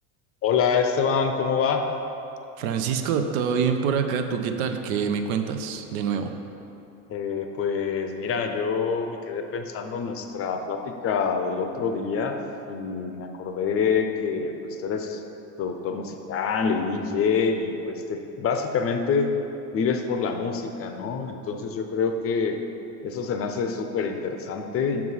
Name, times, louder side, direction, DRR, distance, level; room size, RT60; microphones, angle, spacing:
voice 1, 0.4-1.9 7.1-12.4 12.7-14.5 14.8-15.2 15.6-19.3 19.7-22.6 23.0-25.1, left 5 dB, 35° left, 6 dB, 0.5 m, -26 dB
voice 2, 2.6-6.3, right 6 dB, 85° right, 7 dB, 0.7 m, -26 dB
6.1 x 4.8 x 5.5 m, 2.9 s
supercardioid pair, 120°, 40 cm